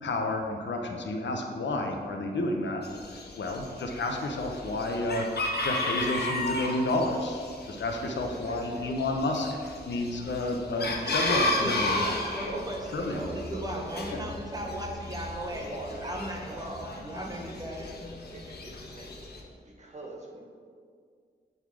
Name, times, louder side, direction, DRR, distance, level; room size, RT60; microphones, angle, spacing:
voice 1, 0.0-2.8 3.4-12.2 12.9-13.3, left 2 dB, 85° left, 3 dB, 0.8 m, -31 dB
Chicken rooster, 2.8-19.4, left 2 dB, 65° left, 1.0 m, -34 dB
voice 2, 8.0-8.7 12.5-12.7 13.1-14.2 14.6-14.8 15.5-16.0 16.3-16.7 17.4-18.0 18.3-19.2 19.6-20.4, right 2 dB, 40° right, -2 dB, 1.3 m, -43 dB
voice 3, 11.0-17.9, right 1 dB, 20° right, 0 dB, 1.0 m, -37 dB
8.7 x 4.0 x 4.7 m, 2.1 s
wide cardioid pair, 115°, 18 cm